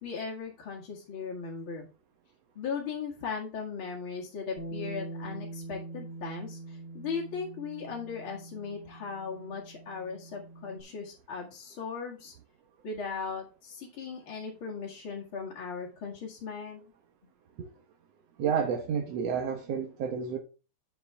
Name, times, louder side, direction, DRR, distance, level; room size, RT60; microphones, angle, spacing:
voice 1, 0.0-1.9 2.6-12.3 12.8-16.9, left 5 dB, 45° left, 2.5 m, -38 dB
Bass guitar, 4.6-10.8, right 2 dB, 30° left, 1.7 m, -43 dB
voice 2, 18.4-20.4, right 7 dB, 65° right, 2.0 m, -30 dB
9.3 x 7.1 x 3.4 m
omnidirectional pair, 3.4 m